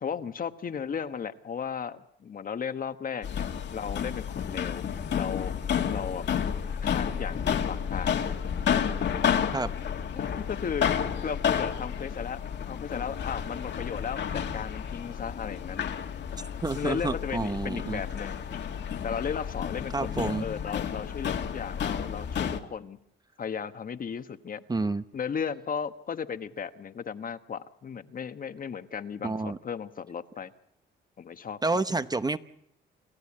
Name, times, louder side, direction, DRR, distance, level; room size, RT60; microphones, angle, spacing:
voice 1, 0.0-4.9 5.1-5.5 5.9-6.3 6.8-8.2 10.1-12.4 12.7-15.9 16.7-18.4 19.0-23.0 23.4-24.6 25.1-30.5 31.2-32.0, left 7 dB, 45° left, 10 dB, 1.3 m, -35 dB
sound 1, 3.2-22.6, left 8 dB, 60° left, 2.0 m, -31 dB
voice 2, 16.6-18.0 19.9-20.4 24.7-25.0 29.2-29.6 31.6-32.4, right 3 dB, 20° right, 12 dB, 0.9 m, -29 dB
28.0 x 15.0 x 8.7 m, 0.76 s
cardioid pair, 90°, 20 cm